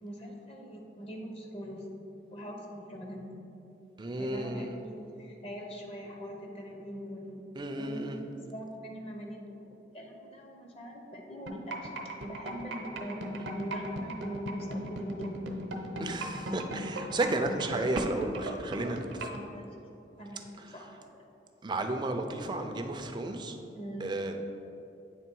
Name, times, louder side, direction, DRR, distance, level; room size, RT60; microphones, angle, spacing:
voice 1, 0.0-1.9 2.3-3.3 4.2-7.4 7.8-9.4 9.7-15.4 19.3-19.7 20.2-21.0 23.7-24.1, equal, 35° left, 1 dB, 0.7 m, -42 dB
voice 2, 4.0-4.8 7.6-8.2 16.0-19.3 20.6-20.7 21.6-23.6 24.0-24.4, right 2 dB, 25° right, 5 dB, 0.4 m, -33 dB
sound 1, 11.5-19.4, right 2 dB, 75° right, 0.8 m, -37 dB
8.3 x 3.5 x 4.5 m, 2.9 s
head